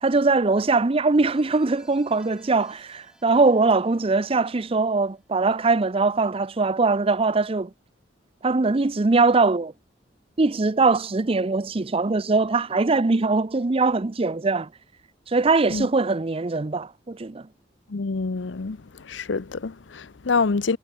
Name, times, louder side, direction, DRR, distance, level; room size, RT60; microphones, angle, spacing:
voice 1, 0.0-7.7 8.4-9.7 10.4-14.7 15.3-17.4, right 3 dB, 30° right, 0.6 m, -21 dB
sound 1, 1.3-6.0, right 1 dB, 5° right, 5.6 m, -59 dB
voice 2, 17.9-18.8 19.1-20.8, left 4 dB, 80° left, 0.7 m, -26 dB
head